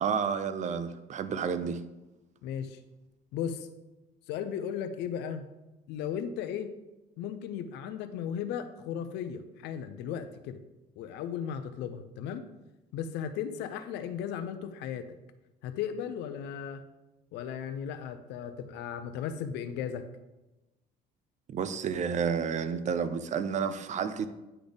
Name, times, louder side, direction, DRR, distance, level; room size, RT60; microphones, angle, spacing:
voice 1, 0.0-1.8 21.5-24.3, right 6 dB, 45° right, 12 dB, 0.5 m, -30 dB
voice 2, 2.4-2.8 3.3-3.7 4.3-5.5 5.9-6.7 7.2-10.6 11.0-12.5 12.9-15.2 15.6-16.8 17.3-20.1, left 8 dB, 85° left, 9 dB, 0.6 m, -36 dB
9.8 x 4.0 x 3.4 m, 1.0 s
cardioid pair, 110°, 17 cm